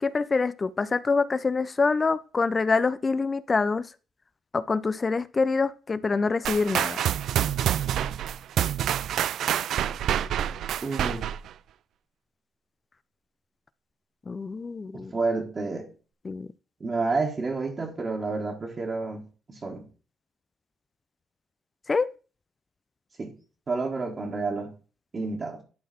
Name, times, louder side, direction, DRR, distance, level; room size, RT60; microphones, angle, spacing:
voice 1, 0.0-3.9 4.5-7.0 14.3-15.1 16.2-16.5 21.9-22.1, left 4 dB, 30° left, 0.4 m, -25 dB
sound 1, 6.4-11.5, right 10 dB, 75° right, 0.3 m, -27 dB
voice 2, 10.8-11.3 15.1-15.9 16.8-19.9 23.2-23.3 23.7-24.7 25.1-25.6, right 3 dB, 35° right, 1.8 m, -30 dB
11.0 x 4.0 x 4.3 m
cardioid pair, 90°, 0 cm